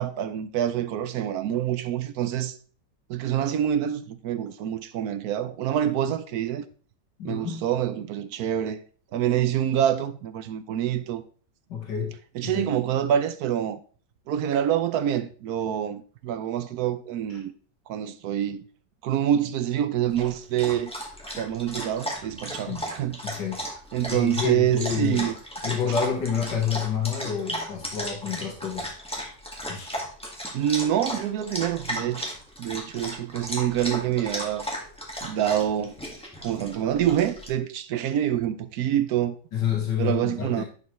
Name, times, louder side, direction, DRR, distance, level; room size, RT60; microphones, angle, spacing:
voice 1, 0.0-2.5 3.1-6.6 7.2-8.8 9.1-11.2 12.3-13.8 14.3-17.5 17.9-18.6 19.0-20.9 21.4-23.2 23.9-25.3 30.5-32.3 32.6-34.6 35.2-36.0 36.4-39.4 40.0-40.6, right 10 dB, 70° right, 1.0 m, -26 dB
voice 2, 7.2-7.6 11.7-12.2 12.4-12.7 22.7-22.9 23.2-23.6 24.0-25.3 25.6-28.9 29.7-29.9 39.5-40.6, left 8 dB, 80° left, 2.0 m, -29 dB
Dog, 20.1-37.5, equal, 5° left, 1.6 m, -35 dB
10.5 x 5.4 x 3.1 m
omnidirectional pair, 1.9 m